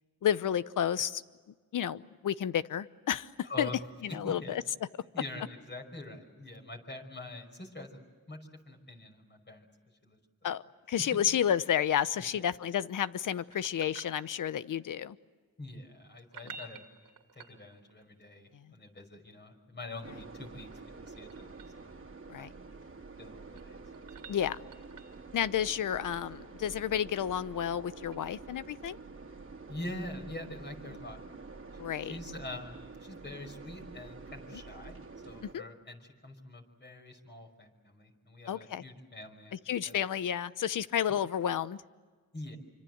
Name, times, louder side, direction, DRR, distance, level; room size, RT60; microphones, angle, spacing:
voice 1, 0.2-1.2 1.7-3.3 3.6-3.7 4.0-4.6 10.4-10.6 10.9-15.2 16.4-16.5 22.3-22.5 24.3-24.6 25.3-29.0 31.8-32.1 35.5-35.6 38.5-38.8 39.7-41.8, left 9 dB, 65° left, 16 dB, 0.9 m, -31 dB
voice 2, 3.4-3.8 4.1-4.6 5.1-8.0 8.3-8.4 8.7-9.7 10.0-10.2 12.2-12.5 15.6-16.8 17.3-20.7 21.0-21.9 22.4-22.6 23.2-23.8 29.7-31.2 32.0-34.9 35.2-39.6 39.8-40.0 42.3-42.6, left 1 dB, 30° left, 4 dB, 5.5 m, -45 dB
sound 1, 13.5-14.7 16.2-18.0 20.2-21.8 23.2-25.3 28.1-28.2, right 5 dB, 70° right, 2.6 m, -51 dB
sound 2, 20.0-35.5, right 4 dB, 40° right, 2.3 m, -48 dB
27.0 x 25.5 x 8.0 m, 1.5 s
cardioid pair, 95°, 34 cm